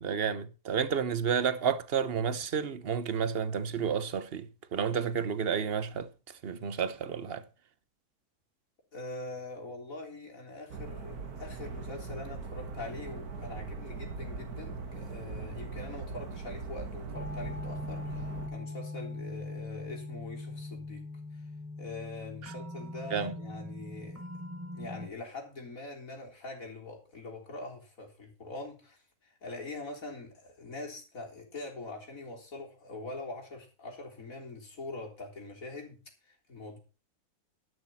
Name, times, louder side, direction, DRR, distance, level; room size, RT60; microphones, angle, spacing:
voice 1, 0.0-6.1 6.4-7.4 23.1-23.3, right 7 dB, 45° right, 1.1 m, -31 dB
voice 2, 8.9-21.1 21.3-21.5 21.8-24.2 24.7-36.0 36.2-36.8, left 2 dB, 60° left, 4.0 m, -43 dB
sound 1, 10.7-18.5, right 4 dB, 80° right, 2.1 m, -40 dB
sound 2, 17.1-25.1, left 2 dB, 10° right, 1.6 m, -41 dB
11.5 x 11.5 x 4.3 m
omnidirectional pair, 1.6 m